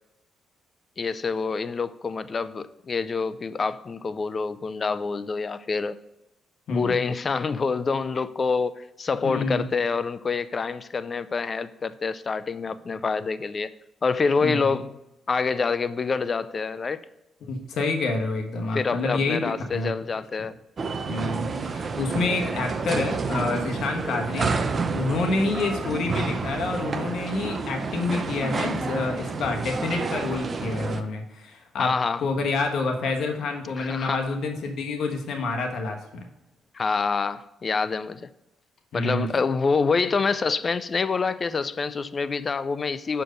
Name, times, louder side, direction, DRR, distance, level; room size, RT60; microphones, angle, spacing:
voice 1, 1.0-6.0 6.7-13.7 14.0-15.0 15.3-17.0 18.7-20.5 31.8-32.2 33.8-34.2 36.7-38.3 38.9-43.2, left 4 dB, 35° left, 0.4 m, -26 dB
voice 2, 6.7-7.0 9.2-9.6 14.4-14.7 17.4-19.4 19.7-19.9 21.1-24.6 24.8-31.9 32.2-36.2 38.9-39.3, left 3 dB, 70° left, 1.2 m, -28 dB
sound 1, 20.8-31.0, right 4 dB, 40° right, 0.6 m, -29 dB
6.6 x 4.5 x 5.0 m
cardioid pair, 90°, 0 cm